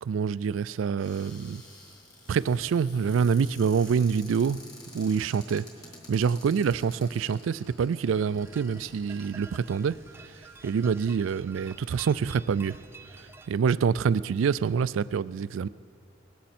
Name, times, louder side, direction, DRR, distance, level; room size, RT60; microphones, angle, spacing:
voice 1, 0.0-1.6 2.3-4.6 4.9-5.7 6.1-10.0 10.2-10.4 10.6-12.8 13.2-15.7, right 6 dB, 75° right, 18 dB, 0.3 m, -26 dB
Cupboard open or close, 1.0-11.3 12.0-12.1 12.4-12.7, left 1 dB, 20° left, 3.4 m, -51 dB
sound 1, 8.3-13.5, right 3 dB, 10° right, 0.5 m, -49 dB
19.0 x 15.5 x 4.3 m, 2.4 s
head